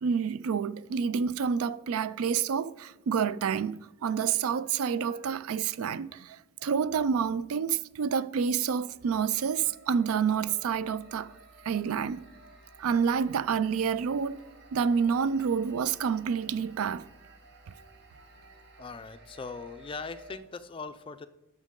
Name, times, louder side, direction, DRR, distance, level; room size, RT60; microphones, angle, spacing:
voice 1, 0.0-11.3 11.6-12.2 12.8-14.4 14.7-17.0 17.7-17.8, right 6 dB, 85° right, 0.4 m, -28 dB
sound 1, 8.8-20.4, right 2 dB, 50° right, 1.2 m, -54 dB
voice 2, 18.8-21.3, left 4 dB, 25° left, 0.4 m, -40 dB
12.5 x 6.2 x 3.7 m
head